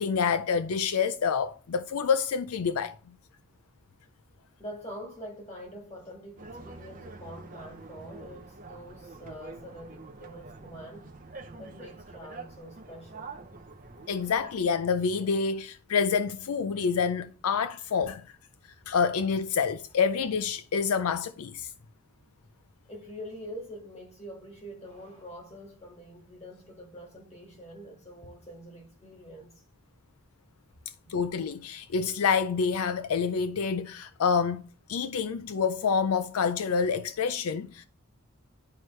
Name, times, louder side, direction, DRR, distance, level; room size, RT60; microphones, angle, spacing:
voice 1, 0.0-3.0 14.1-18.2 18.9-21.7 31.1-34.6 34.9-37.9, left 6 dB, 75° left, 0.4 m, -27 dB
voice 2, 4.6-11.1 11.6-13.3 21.6-21.7 22.9-29.6 31.0-31.1, equal, 30° left, 1.9 m, -45 dB
sound 1, 6.4-14.6, right 3 dB, 35° right, 0.6 m, -46 dB
10.5 x 4.6 x 3.1 m
head